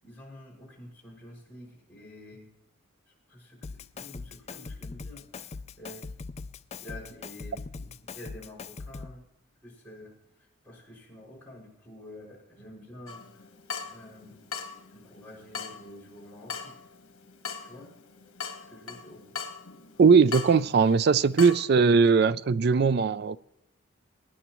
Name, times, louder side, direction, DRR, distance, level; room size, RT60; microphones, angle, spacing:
voice 1, 0.0-2.5 3.3-6.1 6.8-9.2 9.6-10.2 10.6-13.5 13.8-14.4 14.9-16.8 17.6-17.9 18.7-19.5 23.1-23.2, left 1 dB, 10° left, 5.9 m, -48 dB
Drum kit, 3.6-9.2, left 4 dB, 30° left, 0.4 m, -41 dB
Water tap faucet / Drip, 13.1-21.7, left 6 dB, 85° left, 1.4 m, -41 dB
voice 2, 20.0-23.4, right 5 dB, 50° right, 0.4 m, -20 dB
23.0 x 10.0 x 3.1 m
head